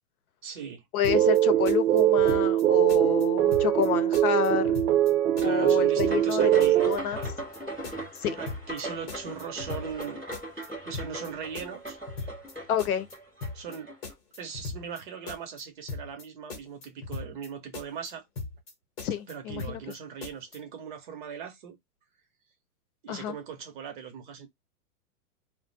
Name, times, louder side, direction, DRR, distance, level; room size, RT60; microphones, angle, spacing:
voice 1, 0.4-0.8 5.4-6.9 7.1-7.3 8.4-10.2 10.8-12.0 13.5-13.9 14.4-18.2 19.3-21.8 23.0-24.5, right 7 dB, 35° right, 0.7 m, -39 dB
voice 2, 0.9-4.8 5.4-7.2 8.2-8.4 12.7-13.1 19.0-19.8 23.1-23.3, left 9 dB, 70° left, 0.7 m, -29 dB
sound 1, 1.0-1.4 1.6-2.6 2.9-3.2 3.5-3.9 4.1-5.1 5.4-5.7 6.0-6.3 6.6-7.6 7.8-8.2 8.5-8.8 9.1-10.0 10.3-10.7 10.9-11.3 11.5-12.5 12.8-13.1 13.4-13.8 14.0-15.0 15.3-15.6 15.9-16.2 16.5-17.5 17.7-18.1 18.4-18.7 19.0-19.9 20.2-20.6, left 4 dB, 25° left, 0.9 m, -38 dB
sound 2, 1.1-7.0, right 12 dB, 70° right, 0.7 m, -22 dB
sound 3, 6.1-14.1, right 1 dB, ahead, 0.4 m, -39 dB
2.4 x 2.1 x 3.8 m
hypercardioid pair, 165°, 46 cm